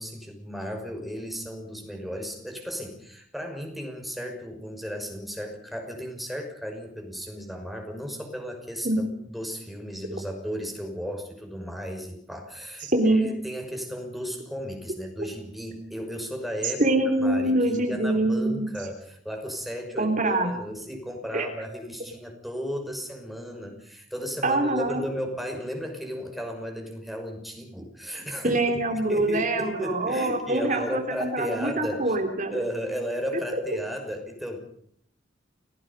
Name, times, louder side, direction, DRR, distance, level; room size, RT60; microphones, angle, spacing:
voice 1, 0.0-16.8 17.2-32.2 32.5-34.6, equal, ahead, 3 dB, 5.8 m, -35 dB
voice 2, 12.8-13.3 16.8-18.7 20.0-20.5 21.3-21.4 24.4-25.0 28.4-32.6, right 2 dB, 40° right, 3 dB, 3.2 m, -24 dB
29.5 x 18.5 x 5.4 m, 0.65 s
head